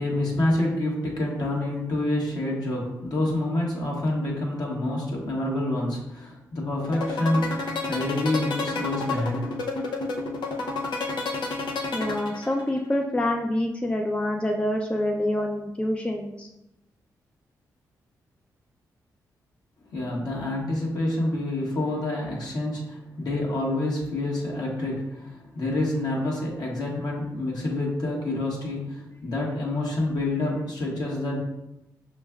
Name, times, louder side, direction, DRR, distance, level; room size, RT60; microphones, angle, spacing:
voice 1, 0.0-9.5 19.9-31.4, left 1 dB, 55° left, -3 dB, 1.4 m, -27 dB
sound 1, 6.8-12.8, left 3 dB, 75° left, 0.6 m, -29 dB
voice 2, 11.9-16.5, left 1 dB, 15° left, 2 dB, 0.4 m, -26 dB
5.4 x 3.1 x 2.3 m, 0.90 s
supercardioid pair, 50°, 8 cm